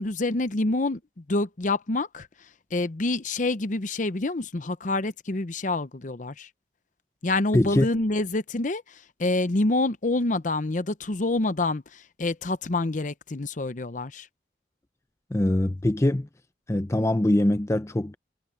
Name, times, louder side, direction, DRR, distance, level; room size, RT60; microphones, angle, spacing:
voice 1, 0.0-2.3 2.7-6.5 7.2-14.3, left 2 dB, 45° left, 0.8 m, -27 dB
voice 2, 7.5-7.9 15.3-16.3 16.7-18.2, left 1 dB, 15° left, 0.5 m, -23 dB
head